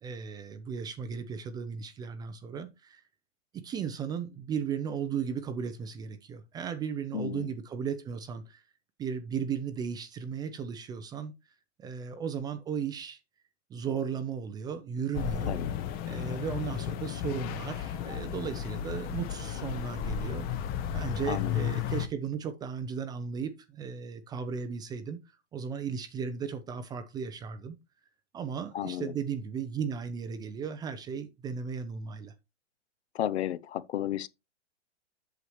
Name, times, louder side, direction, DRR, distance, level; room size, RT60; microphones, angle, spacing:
voice 1, 0.0-3.0 3.5-8.6 9.0-11.3 11.8-13.2 13.7-15.6 16.0-20.5 20.9-25.2 25.5-27.8 28.3-32.3, right 7 dB, 10° right, 0.4 m, -35 dB
voice 2, 7.1-7.5 15.5-15.7 21.3-21.5 28.7-29.1 33.1-34.3, left 11 dB, 65° left, 0.7 m, -33 dB
sound 1, 15.1-22.1, left 9 dB, 25° left, 0.7 m, -34 dB
8.2 x 6.8 x 3.1 m
hypercardioid pair, 120°, 35 cm